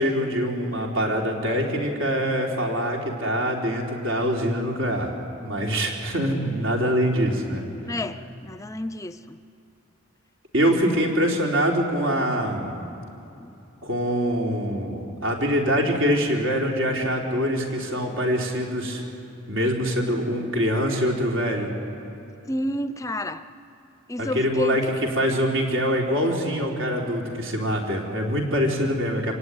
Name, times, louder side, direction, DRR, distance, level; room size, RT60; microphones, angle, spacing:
voice 1, 0.0-5.1 5.4-7.6 10.5-12.9 13.8-19.0 19.5-21.7 24.2-24.8 25.2-29.4, equal, 75° right, 0 dB, 3.7 m, -24 dB
voice 2, 7.9-9.4 13.4-13.5 22.5-23.4 24.1-24.8, left 1 dB, 15° left, 12 dB, 0.5 m, -30 dB
26.0 x 17.5 x 9.6 m, 2.8 s
head